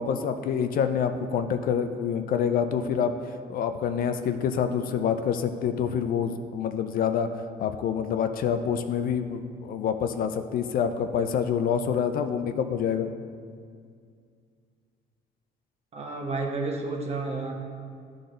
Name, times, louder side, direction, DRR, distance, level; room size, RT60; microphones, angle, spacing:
voice 1, 0.0-3.1 3.5-7.3 7.6-13.1, left 7 dB, 60° left, 8 dB, 0.5 m, -27 dB
voice 2, 15.9-17.5, right 3 dB, 40° right, 1 dB, 1.2 m, -31 dB
11.5 x 3.9 x 3.9 m, 2.2 s
cardioid pair, 110°, 17 cm